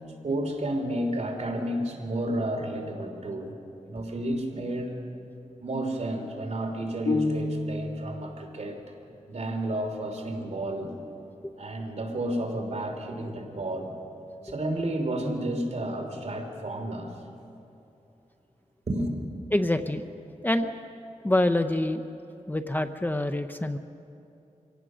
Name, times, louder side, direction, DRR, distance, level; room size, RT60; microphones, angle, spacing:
voice 1, 0.2-3.5 3.9-4.9 5.6-8.8 9.3-11.0 11.6-13.9 14.4-17.1 18.9-19.1, right 1 dB, 60° right, 3 dB, 3.1 m, -31 dB
sound 1, 7.1-8.1, left 3 dB, 90° left, 1.7 m, -28 dB
voice 2, 19.5-20.0 20.4-20.7 21.2-22.0 22.5-23.8, left 1 dB, 15° left, 7 dB, 0.7 m, -26 dB
25.5 x 17.5 x 6.3 m, 2.9 s
wide cardioid pair, 110°, 13 cm